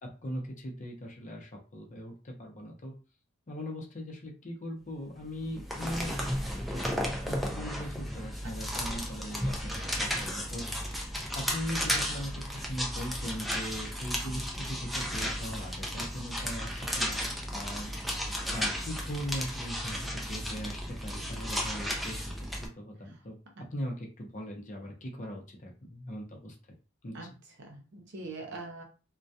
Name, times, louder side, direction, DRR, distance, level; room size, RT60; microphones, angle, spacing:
voice 1, 0.2-2.9 3.5-6.3 6.7-10.8 11.3-17.9 18.5-23.4 23.7-26.6 27.0-27.3, equal, 40° left, 0 dB, 0.7 m, -40 dB
sound 1, 5.4-22.7, equal, ahead, 0.4 m, -34 dB
voice 2, 27.1-28.8, right 3 dB, 60° right, 1 dB, 0.7 m, -43 dB
2.2 x 2.2 x 2.6 m, 0.34 s
head